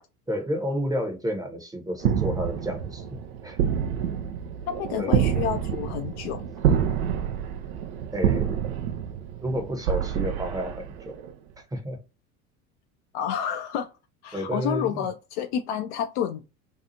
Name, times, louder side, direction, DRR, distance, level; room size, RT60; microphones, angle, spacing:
voice 1, 0.3-3.7 5.0-5.2 8.1-8.6 9.4-11.2 11.7-12.0 14.3-15.0, equal, 10° right, 0.7 m, -31 dB
sound 1, 2.0-11.3, right 9 dB, 65° right, 0.5 m, -27 dB
voice 2, 4.7-6.4 13.1-13.9 14.2-16.4, left 9 dB, 50° left, 0.4 m, -29 dB
2.7 x 2.3 x 2.7 m
figure-of-eight pair, 75°, 46 cm